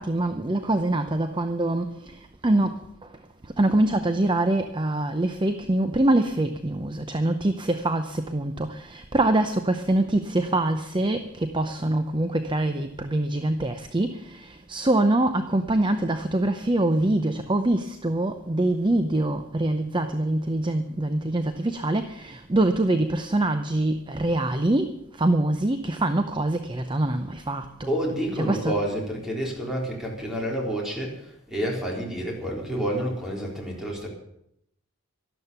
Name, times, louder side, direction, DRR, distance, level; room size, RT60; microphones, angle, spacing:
voice 1, 0.0-28.8, right 1 dB, 20° right, 0.7 m, -24 dB
voice 2, 27.9-34.1, right 1 dB, ahead, 4.0 m, -29 dB
12.5 x 12.5 x 7.0 m
head